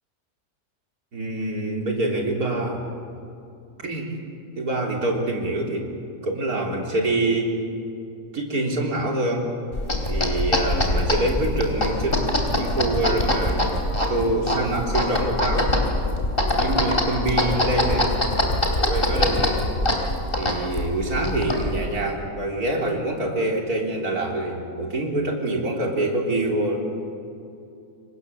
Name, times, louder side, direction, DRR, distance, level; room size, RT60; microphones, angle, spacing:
voice 1, 1.1-2.8 3.8-4.1 4.5-5.9 6.2-7.6 8.3-9.5 10.1-12.3 12.6-13.7 14.1-15.7 16.5-18.1 18.8-19.6 20.4-26.9, right 1 dB, 60° right, 0 dB, 4.1 m, -25 dB
sound 1, 9.7-21.9, left 1 dB, 30° left, 3.8 m, -23 dB
29.5 x 24.5 x 7.2 m, 2.7 s
omnidirectional pair, 1.8 m